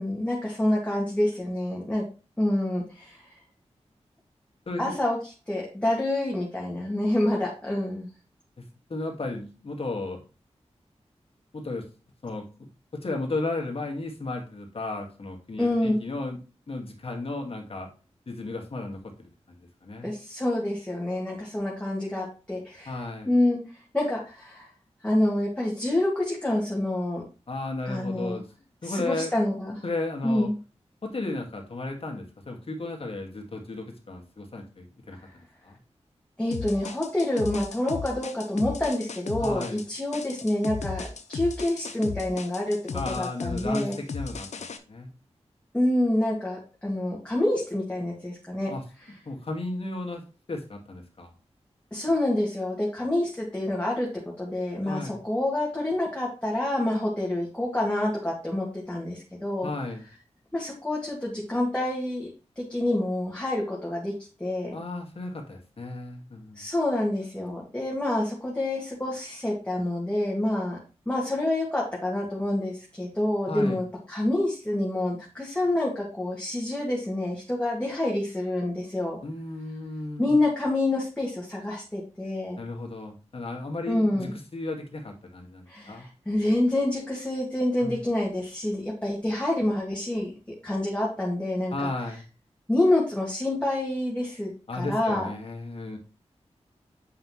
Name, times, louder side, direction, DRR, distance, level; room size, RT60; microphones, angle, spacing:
voice 1, 0.0-2.0 2.4-3.3 4.8-5.2 5.5-8.1 15.6-16.0 20.0-23.0 23.3-24.7 25.0-27.2 27.9-28.4 28.8-29.8 30.2-30.5 35.2-35.3 36.4-44.0 45.7-48.7 51.9-59.7 60.5-62.3 62.6-64.1 64.4-64.8 66.6-70.8 71.1-79.2 80.2-82.6 83.9-84.3 85.7-90.3 90.6-91.9 92.7-95.3, left 1 dB, 10° left, -4 dB, 2.1 m, -27 dB
voice 2, 8.9-10.2 11.5-11.8 12.2-12.4 12.9-16.4 16.7-17.9 18.3-20.1 22.9-23.3 27.5-28.4 28.8-29.3 29.8-30.5 31.0-35.8 39.4-39.8 42.9-45.1 48.7-48.8 49.3-50.2 50.5-51.3 54.8-55.2 59.6-60.0 64.7-66.6 73.5-73.8 79.2-80.4 82.6-86.1 87.8-88.0 91.7-92.2 94.7-96.0, left 2 dB, 55° left, 2 dB, 1.9 m, -34 dB
sound 1, 36.5-44.8, left 5 dB, 80° left, 0.7 m, -36 dB
7.7 x 5.6 x 3.1 m, 0.33 s
cardioid pair, 60°, 12 cm